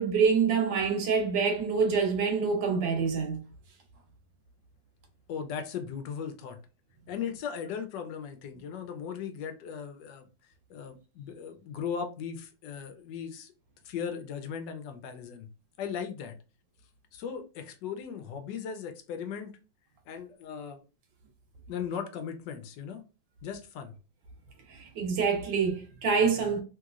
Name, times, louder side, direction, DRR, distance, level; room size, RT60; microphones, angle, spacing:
voice 1, 0.0-3.4 24.7-26.6, right 5 dB, 75° right, 1.5 m, -26 dB
voice 2, 5.3-6.6 7.1-10.3 10.7-13.5 13.8-15.5 15.8-16.4 17.1-19.6 20.1-20.8 21.7-23.0 23.4-23.9, left 7 dB, 75° left, 1.2 m, -37 dB
3.2 x 2.9 x 2.4 m
omnidirectional pair, 2.0 m